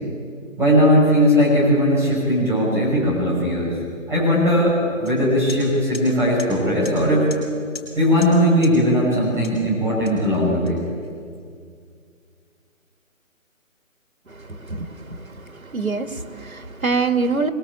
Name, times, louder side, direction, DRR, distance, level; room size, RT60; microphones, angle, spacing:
voice 1, 0.6-3.7 4.1-7.3 8.0-10.8, equal, 5° right, -7 dB, 6.4 m, -18 dB
sound 1, 5.0-5.2 5.5-5.6 5.9-6.1 6.4-6.5 6.8-7.0 7.3-7.4 7.7-7.9 8.2-8.3 8.6-8.7 9.4-9.6 10.1-11.1, left 5 dB, 45° left, 6.9 m, -38 dB
voice 2, 14.5-15.2 15.6-17.5, right 4 dB, 90° right, 8 dB, 2.3 m, -24 dB
25.0 x 23.5 x 8.5 m, 2.2 s
figure-of-eight pair, 155°, 41 cm